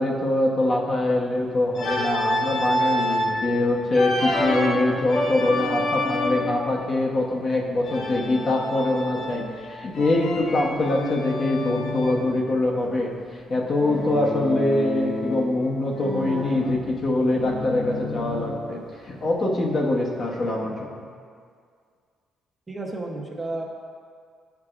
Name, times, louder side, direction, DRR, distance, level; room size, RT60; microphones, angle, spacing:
voice 1, 0.0-13.1 13.5-20.7, left 2 dB, 45° left, -1 dB, 1.0 m, -24 dB
Organ, 1.7-3.4 3.9-6.6 7.8-9.6 9.9-12.3 13.8-15.6 15.9-18.7, left 1 dB, 75° left, 1.0 m, -28 dB
voice 2, 22.7-23.6, right 2 dB, 20° right, -1 dB, 0.9 m, -32 dB
9.8 x 4.8 x 2.5 m, 2.1 s
cardioid pair, 90°, 0 cm